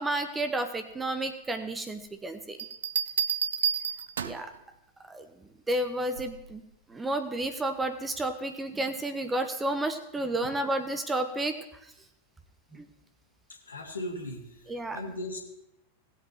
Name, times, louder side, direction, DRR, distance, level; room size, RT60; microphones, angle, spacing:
voice 1, 0.0-2.6 4.2-4.5 5.0-5.3 5.7-6.6 6.9-11.6 12.7-12.8 14.7-15.0, right 1 dB, 10° right, 8 dB, 1.0 m, -31 dB
Bell, 2.6-4.5 6.2-6.5, right 8 dB, 65° right, 0.5 m, -30 dB
voice 2, 13.7-14.4 14.9-15.4, left 1 dB, 75° left, 0 dB, 2.1 m, -36 dB
18.5 x 8.1 x 3.0 m, 0.82 s
figure-of-eight pair, 90°, 0 cm